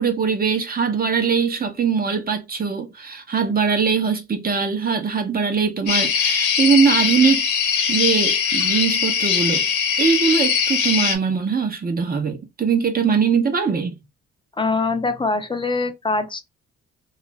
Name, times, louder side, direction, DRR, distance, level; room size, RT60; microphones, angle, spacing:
voice 1, 0.0-7.4 7.9-9.7 10.0-13.9, right 6 dB, 30° right, 0.7 m, -21 dB
sound 1, 5.9-11.2, left 7 dB, 75° left, 0.9 m, -21 dB
voice 2, 14.6-16.4, left 3 dB, 15° left, 0.6 m, -23 dB
2.4 x 2.4 x 3.0 m
cardioid pair, 90°, 30 cm